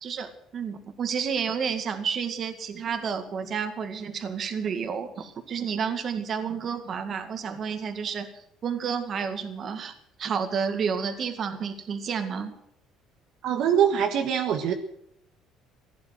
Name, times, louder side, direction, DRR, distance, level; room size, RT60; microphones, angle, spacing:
voice 1, 0.0-9.9 10.2-12.5, right 6 dB, 45° right, 8 dB, 2.0 m, -30 dB
voice 2, 13.4-14.7, right 8 dB, 65° right, 4 dB, 1.6 m, -23 dB
16.0 x 10.5 x 7.8 m, 0.75 s
cardioid pair, 115°, 0 cm